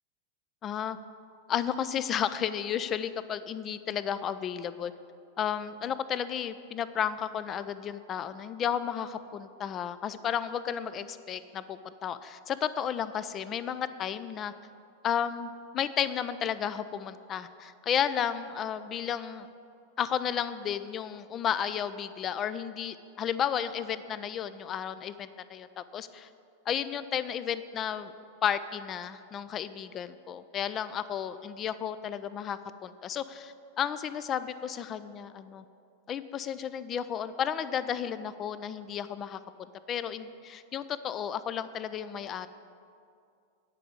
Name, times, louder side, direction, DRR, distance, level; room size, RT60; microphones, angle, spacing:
voice 1, 0.6-1.0 1.5-4.9 5.4-14.5 15.0-19.5 20.0-26.3 26.7-28.1 28.4-35.6 36.1-42.5, left 8 dB, 30° left, 14 dB, 0.4 m, -33 dB
9.8 x 5.5 x 7.9 m, 2.4 s
figure-of-eight pair, 90°, 0 cm